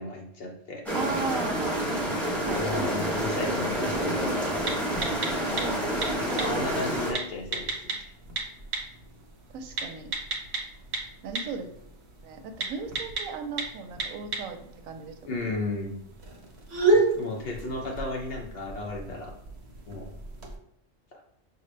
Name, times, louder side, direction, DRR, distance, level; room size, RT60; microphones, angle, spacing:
voice 1, 0.0-0.8 2.5-4.5 6.3-8.1 15.3-16.0 16.9-19.3 19.9-20.1 21.1-21.2, left 2 dB, 60° left, 2 dB, 0.6 m, -34 dB
sound 1, 0.9-7.1, equal, ahead, 0.8 m, -28 dB
voice 2, 0.9-1.8 2.4-2.8 5.6-6.4 9.5-10.1 11.2-11.7 12.2-15.3, right 5 dB, 85° right, 6 dB, 1.0 m, -36 dB
sound 2, 2.3-20.6, right 3 dB, 55° right, 1.1 m, -33 dB
6.1 x 2.2 x 3.2 m, 0.72 s
omnidirectional pair, 1.4 m